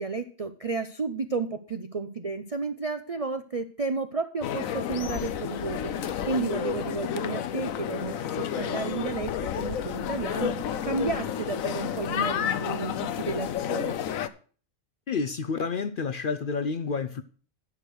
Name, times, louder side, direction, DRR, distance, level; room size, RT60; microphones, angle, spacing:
voice 1, 0.0-14.0, right 4 dB, 45° right, 0.4 m, -32 dB
sound 1, 4.4-14.3, left 9 dB, 85° left, 1.1 m, -31 dB
voice 2, 15.1-17.2, left 5 dB, 55° left, 0.6 m, -29 dB
11.0 x 6.5 x 6.3 m
omnidirectional pair, 1.4 m